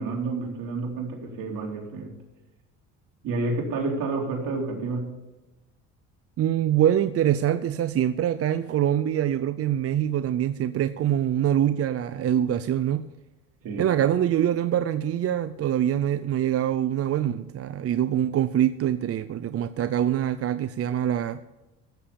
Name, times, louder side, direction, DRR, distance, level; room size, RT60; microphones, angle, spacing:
voice 1, 0.0-2.1 3.2-5.2 13.6-13.9, right 3 dB, 65° right, 1 dB, 3.7 m, -29 dB
voice 2, 6.4-13.1 13.8-21.4, right 10 dB, 40° right, 13 dB, 0.6 m, -24 dB
15.0 x 7.3 x 7.1 m, 1.1 s
supercardioid pair, 85°, 35 cm